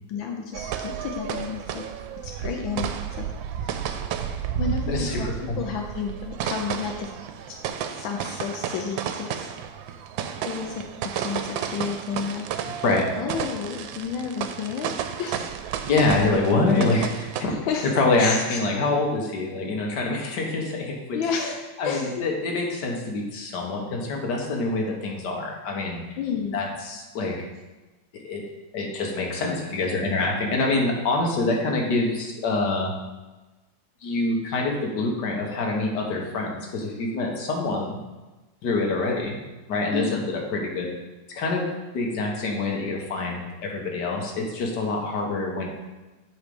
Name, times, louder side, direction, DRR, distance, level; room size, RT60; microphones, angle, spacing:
voice 1, 0.1-1.9 2.2-2.9 3.2-3.3 3.6-3.9 4.6-5.3 5.6-7.1 7.5-7.6 7.9-9.5 10.4-12.5 13.2-14.9 15.2-15.5 17.5-17.9 18.2-18.6 21.1-22.2 26.2-26.6 39.9-40.2, left 6 dB, 85° left, 2 dB, 1.5 m, -31 dB
sound 1, 0.5-17.4, right 8 dB, 85° right, 1.3 m, -32 dB
voice 2, 4.9-5.6 12.8-13.1 15.9-17.5 18.0-21.2 21.8-26.0 26.5-27.3 28.2-28.4 28.7-32.9 34.0-38.0 38.6-39.4 39.7-40.2 40.5-40.9 41.4-41.7 41.9-45.7, left 3 dB, 65° left, 0 dB, 1.8 m, -25 dB
7.9 x 4.1 x 5.2 m, 1.2 s
omnidirectional pair, 2.1 m